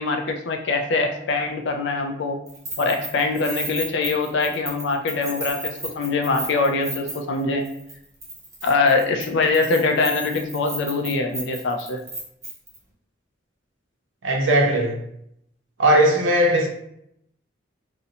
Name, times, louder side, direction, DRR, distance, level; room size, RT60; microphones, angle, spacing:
voice 1, 0.0-2.4 2.8-7.6 8.6-12.0, left 3 dB, 60° left, 5 dB, 0.3 m, -23 dB
Keys jangling, 2.5-7.4 7.6-7.9 8.2-12.8, right 2 dB, 15° right, 0.5 m, -34 dB
voice 2, 14.2-15.0 15.8-16.7, right 1 dB, 70° right, 1 dB, 0.5 m, -18 dB
2.5 x 2.0 x 2.8 m, 0.75 s
head